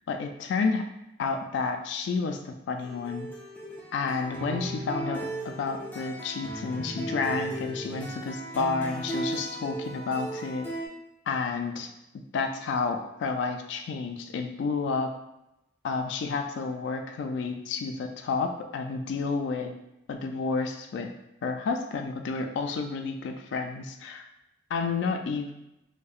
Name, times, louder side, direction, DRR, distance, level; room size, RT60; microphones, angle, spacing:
voice 1, 0.1-0.8 1.2-3.3 3.9-10.7 11.3-11.9 12.3-15.1 15.8-19.7 20.1-21.1 21.4-24.3 24.7-25.5, left 4 dB, 80° left, 5 dB, 0.3 m, -30 dB
sound 1, 2.8-10.9, right 1 dB, 10° left, 0.4 m, -36 dB
2.7 x 2.0 x 2.4 m, 0.89 s
head